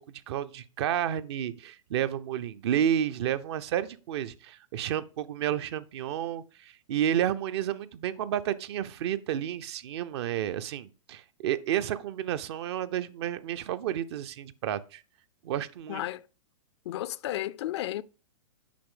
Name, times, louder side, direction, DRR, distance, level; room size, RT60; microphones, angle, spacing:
voice 1, 0.3-15.0 15.4-16.0, right 10 dB, 50° right, 0.6 m, -31 dB
voice 2, 15.9-16.3 16.9-18.0, left 14 dB, 50° left, 0.4 m, -33 dB
8.6 x 5.8 x 3.7 m
hypercardioid pair, 115°, 18 cm